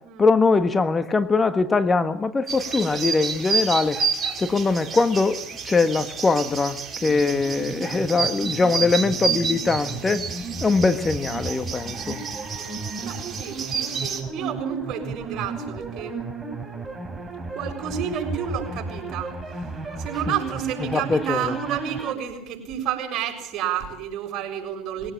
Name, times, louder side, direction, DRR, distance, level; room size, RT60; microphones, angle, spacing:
voice 1, 0.2-4.0 4.4-10.2 10.6-12.2 20.9-21.5, left 4 dB, 25° left, 10 dB, 1.6 m, -22 dB
sound 1, 2.5-14.2, right 5 dB, 35° right, 5.2 m, -30 dB
sound 2, 7.0-22.1, right 4 dB, 15° right, 4.2 m, -34 dB
voice 2, 13.0-16.2 17.5-19.3 20.0-25.1, right 9 dB, 55° right, 4 dB, 6.9 m, -30 dB
21.5 x 18.0 x 8.9 m, 0.71 s
hypercardioid pair, 85°, 0 cm